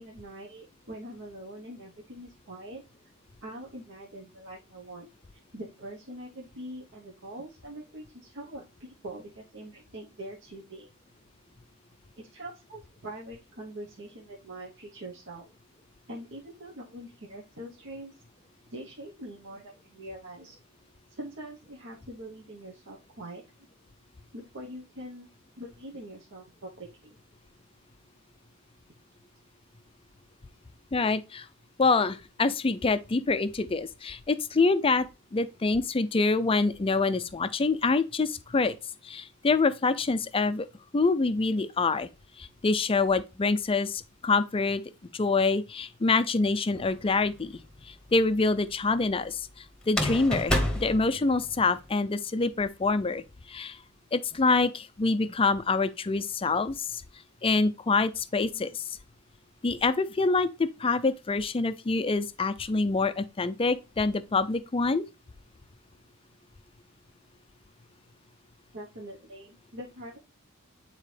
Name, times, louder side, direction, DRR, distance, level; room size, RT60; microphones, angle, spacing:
voice 1, 0.0-2.8 3.4-5.1 5.5-10.9 12.2-15.5 16.1-18.2 18.7-20.6 21.1-23.4 24.3-25.3 25.6-27.1 68.7-70.2, right 1 dB, 55° right, 1.1 m, -43 dB
voice 2, 30.9-31.5 31.8-35.1 35.3-38.8 39.0-40.7 40.9-42.1 42.4-44.8 45.1-53.8 54.1-57.0 57.4-59.0 59.6-65.0, left 3 dB, 25° left, 0.4 m, -26 dB
sound 1, 46.7-47.4 49.8-51.8, left 1 dB, 5° left, 1.1 m, -29 dB
9.5 x 4.1 x 3.3 m
head